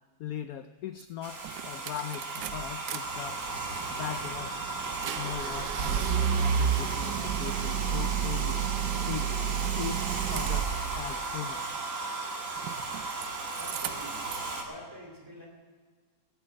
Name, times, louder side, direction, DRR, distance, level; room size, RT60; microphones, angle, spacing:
voice 1, 0.2-3.4 3.9-4.6 5.1-8.6 8.9-9.3 9.8-11.7, left 10 dB, 70° left, 10 dB, 0.9 m, -40 dB
sound 1, 1.0-1.1 1.4-3.0 3.3-11.1 12.6-13.3 13.5-14.5, right 8 dB, 75° right, 1.2 m, -31 dB
Domestic sounds home sounds, 1.2-14.6, right 3 dB, 50° right, 2.1 m, -35 dB
voice 2, 13.5-14.3 14.6-15.5, equal, 10° right, 0 dB, 3.1 m, -46 dB
16.0 x 8.0 x 7.6 m, 1.5 s
omnidirectional pair, 1.8 m